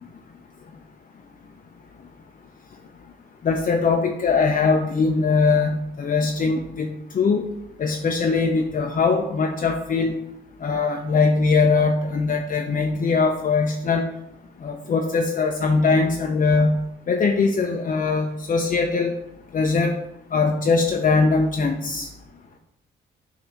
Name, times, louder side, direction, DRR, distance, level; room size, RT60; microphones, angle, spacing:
voice 1, 3.4-6.9 7.1-7.4 7.8-10.1 10.6-14.0 14.6-16.8 17.1-19.1 19.5-19.9 20.3-22.1, left 4 dB, 40° left, 3 dB, 0.7 m, -21 dB
7.9 x 2.8 x 5.8 m, 0.84 s
cardioid pair, 90°, 20 cm